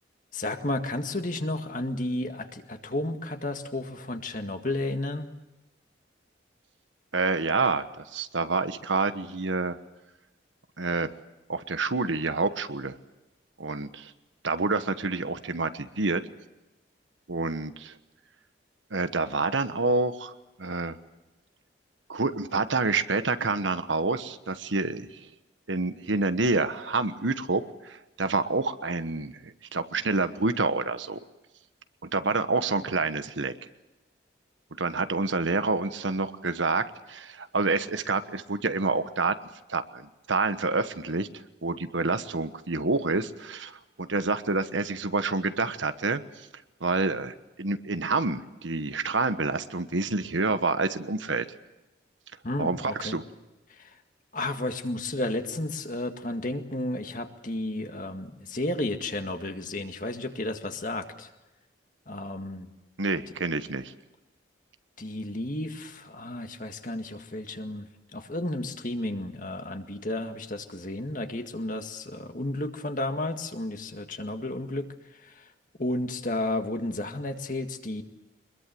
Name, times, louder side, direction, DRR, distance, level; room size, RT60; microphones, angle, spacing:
voice 1, 0.3-5.3 52.4-53.2 53.7-54.0 54.3-61.3 62.1-62.7 65.0-74.9 75.2-75.5 75.8-78.0, left 1 dB, 45° left, 6 dB, 1.9 m, -32 dB
voice 2, 7.1-9.8 10.8-11.1 11.5-13.0 13.6-14.1 14.4-16.2 17.3-17.9 18.9-20.3 20.6-20.9 22.1-25.3 25.7-31.2 32.0-33.5 34.8-39.3 39.7-41.3 41.6-46.2 46.8-51.5 52.6-53.2 63.0-63.9, right 3 dB, 85° right, 10 dB, 1.3 m, -28 dB
24.0 x 21.5 x 7.8 m, 1.0 s
head